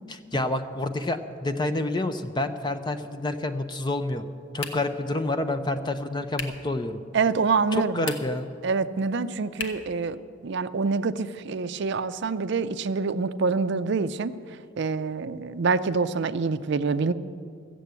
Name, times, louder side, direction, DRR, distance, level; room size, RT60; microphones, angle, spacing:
voice 1, 0.3-4.3 4.5-7.0 7.7-8.5, left 2 dB, 20° left, 9 dB, 0.5 m, -28 dB
sound 1, 4.6-5.1 6.3-6.7 7.9-8.5 9.6-10.0, left 4 dB, 70° left, 1.2 m, -36 dB
voice 2, 7.1-8.1 8.6-14.3 14.8-17.1, right 4 dB, 60° right, 13 dB, 0.5 m, -26 dB
14.5 x 7.7 x 8.2 m, 2.3 s
head